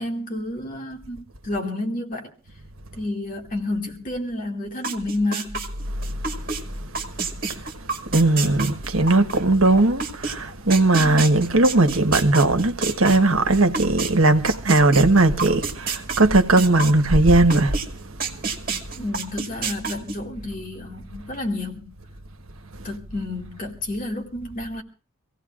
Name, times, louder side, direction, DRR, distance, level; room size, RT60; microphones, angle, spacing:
voice 1, 0.0-2.3 3.0-5.7 19.0-21.9 22.8-24.8, left 2 dB, 40° left, 2.3 m, -30 dB
sound 1, 4.8-6.6 6.9-14.1 14.4-17.9 18.2-20.2, right 5 dB, 45° right, 2.3 m, -29 dB
voice 2, 8.0-17.8, right 2 dB, 85° right, 1.3 m, -18 dB
26.0 x 16.5 x 2.5 m
head